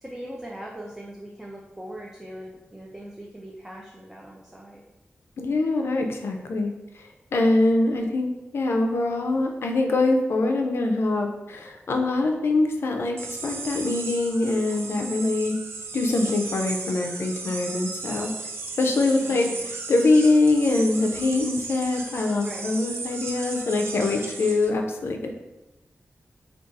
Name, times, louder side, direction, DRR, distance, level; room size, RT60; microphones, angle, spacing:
voice 1, 0.0-4.8 19.2-19.6 22.4-22.7, right 1 dB, 10° right, -2 dB, 0.4 m, -40 dB
voice 2, 5.4-6.7 7.0-15.6 15.9-18.3 18.8-25.3, left 2 dB, 75° left, 3 dB, 0.4 m, -23 dB
sound 1, 13.2-24.7, right 4 dB, 80° right, 0.4 m, -36 dB
2.5 x 2.3 x 3.9 m, 1.0 s
wide cardioid pair, 75°, 4 cm